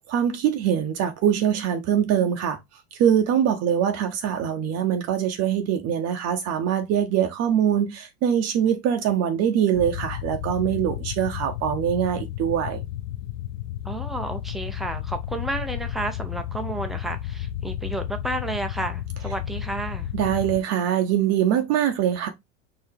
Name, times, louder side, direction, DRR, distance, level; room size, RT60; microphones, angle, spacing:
voice 1, 0.1-2.6 2.9-12.8 20.1-22.3, right 9 dB, 40° right, 0.8 m, -23 dB
sound 1, 9.7-20.6, left 11 dB, 75° left, 0.7 m, -32 dB
voice 2, 13.8-20.1, right 2 dB, ahead, 0.5 m, -31 dB
4.7 x 2.7 x 3.4 m
hypercardioid pair, 115°, 40 cm